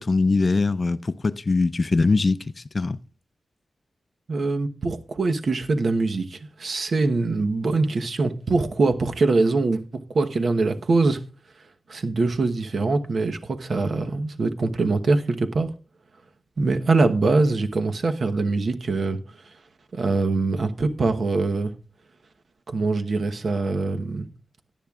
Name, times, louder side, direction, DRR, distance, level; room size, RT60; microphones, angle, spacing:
voice 1, 0.0-2.4 2.7-3.0, left 3 dB, 40° left, 0.4 m, -21 dB
voice 2, 4.3-9.8 10.1-11.2 11.9-15.7 16.6-19.2 19.9-21.7 22.7-24.3, right 3 dB, 65° right, 1.0 m, -23 dB
17.5 x 10.0 x 2.4 m
wide cardioid pair, 95°, 0 cm